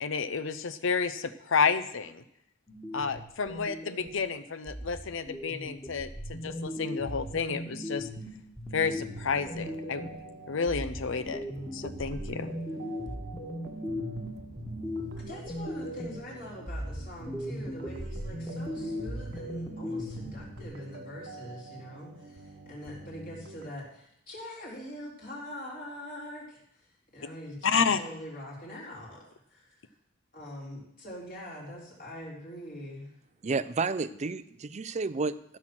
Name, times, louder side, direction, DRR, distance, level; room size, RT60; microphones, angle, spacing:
voice 1, 0.0-2.2 2.9-8.1 8.7-10.1 10.5-11.4 11.7-12.5 27.6-28.0, left 5 dB, 65° left, 12 dB, 0.7 m, -30 dB
sound 1, 2.7-4.3 4.7-10.3 10.7-16.3 16.7-20.6, equal, 10° left, 1.8 m, -38 dB
sound 2, 8.8-23.7, right 2 dB, 55° right, 1.1 m, -46 dB
voice 2, 15.2-26.8 27.1-29.2 29.5-29.8 30.3-33.1, equal, 45° left, -4 dB, 3.8 m, -43 dB
voice 3, 33.4-35.6, right 4 dB, 35° right, 15 dB, 0.5 m, -31 dB
14.5 x 6.2 x 6.1 m, 0.76 s
head